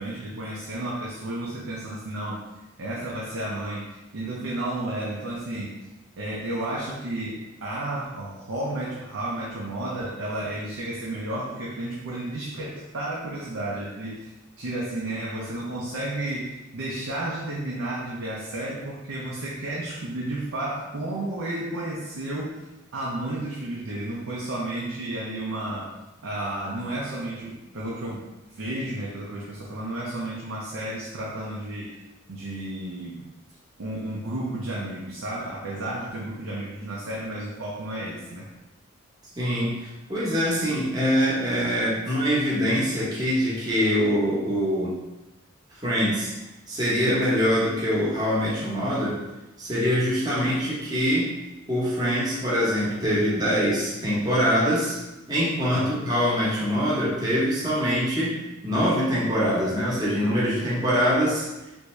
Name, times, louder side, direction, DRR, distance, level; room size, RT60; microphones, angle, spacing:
voice 1, 0.0-2.4 2.8-5.8 6.2-22.7 22.9-25.9 26.2-28.2 28.5-31.9 32.3-33.2 33.8-38.5 55.7-56.1, right 1 dB, 90° right, -5 dB, 0.6 m, -32 dB
voice 2, 39.4-44.9 45.8-46.3 46.7-49.2 49.6-51.3 51.7-55.0 55.3-58.4 58.6-61.4, equal, 20° right, -8 dB, 0.8 m, -24 dB
3.4 x 2.6 x 3.1 m, 1.0 s
head